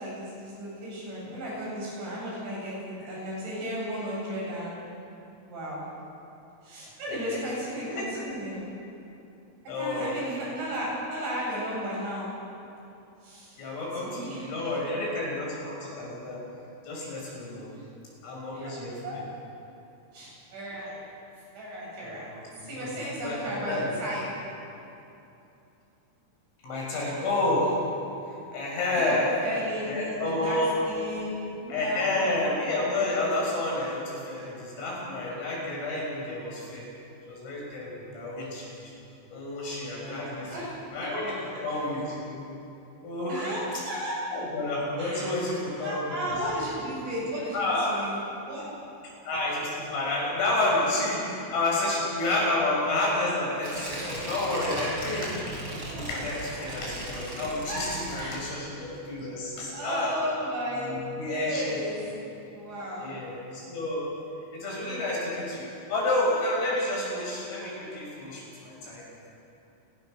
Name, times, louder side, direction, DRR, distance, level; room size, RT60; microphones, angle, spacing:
voice 1, 0.0-4.7 5.5-5.8 6.6-8.6 9.7-12.3 13.2-13.6 14.0-15.2 17.5-17.7 18.5-18.7 19.0-19.2 20.1-21.0 21.5-22.3 22.6-24.3 28.9-32.1 40.0-40.7 41.0-41.3 43.3-44.2 45.0-45.5 45.8-48.7 55.9-56.4 57.6-57.9 58.2-58.4 59.7-62.0 62.5-63.2, equal, 60° right, -5 dB, 10.5 m, -34 dB
voice 2, 7.1-7.4 7.9-8.1 9.7-10.2 13.6-16.4 16.8-17.7 18.2-19.3 22.0-24.0 26.6-27.7 28.5-29.3 29.9-30.8 31.7-36.9 37.3-38.9 39.3-40.6 40.9-42.4 43.0-43.8 44.3-46.1 46.5-46.6 47.5-48.0 49.3-55.3 55.9-60.2 60.8-61.6 63.0-64.1 64.5-69.0, left 2 dB, 70° left, -3 dB, 8.8 m, -30 dB
Tearing, 53.6-58.7 59.1-59.2, right 1 dB, 25° right, 5.6 m, -37 dB
29.0 x 20.0 x 6.7 m, 2.8 s
omnidirectional pair, 6.0 m